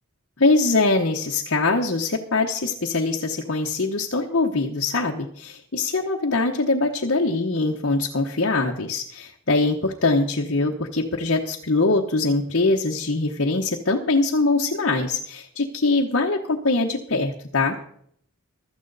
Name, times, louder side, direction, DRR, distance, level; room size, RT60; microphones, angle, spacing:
voice 1, 0.4-17.8, left 3 dB, 55° left, 0 dB, 1.0 m, -23 dB
15.5 x 12.5 x 4.0 m, 0.66 s
head